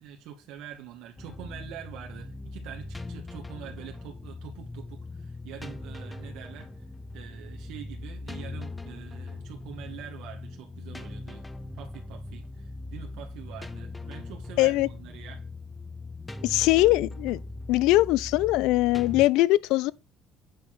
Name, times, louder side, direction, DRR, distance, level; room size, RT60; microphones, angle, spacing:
voice 1, 0.0-6.8 7.1-11.5 11.7-15.4, right 9 dB, 80° right, 1.8 m, -45 dB
sound 1, 1.2-19.3, left 2 dB, 15° left, 0.8 m, -40 dB
voice 2, 14.6-14.9 16.4-17.4 17.7-19.9, left 18 dB, 80° left, 0.4 m, -21 dB
8.8 x 4.0 x 6.1 m
supercardioid pair, 95°, 0 cm